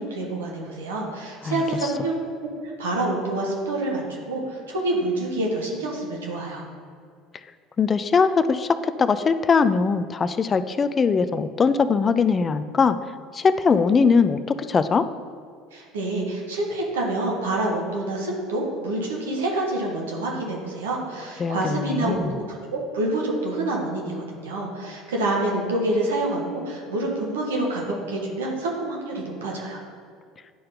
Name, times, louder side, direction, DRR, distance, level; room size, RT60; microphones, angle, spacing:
voice 1, 0.0-2.1 2.4-2.5 2.8-6.6 15.7-29.8, right 2 dB, 75° right, -2 dB, 1.5 m, -27 dB
voice 2, 7.8-13.0 13.3-15.1 21.4-22.3, left 5 dB, 30° left, 12 dB, 0.4 m, -21 dB
10.5 x 4.3 x 3.8 m, 2.2 s
figure-of-eight pair, 65°, 0 cm